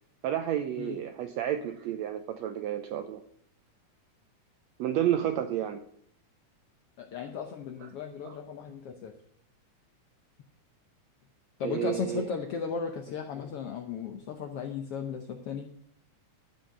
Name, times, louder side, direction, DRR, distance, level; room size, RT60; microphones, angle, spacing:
voice 1, 0.2-3.2 4.8-5.8 7.8-7.9 8.2-8.4 11.6-12.3, right 11 dB, 85° right, 8 dB, 1.5 m, -31 dB
voice 2, 7.0-9.1 11.6-15.7, left 6 dB, 80° left, 5 dB, 1.3 m, -36 dB
14.0 x 5.5 x 6.4 m, 0.67 s
omnidirectional pair, 3.7 m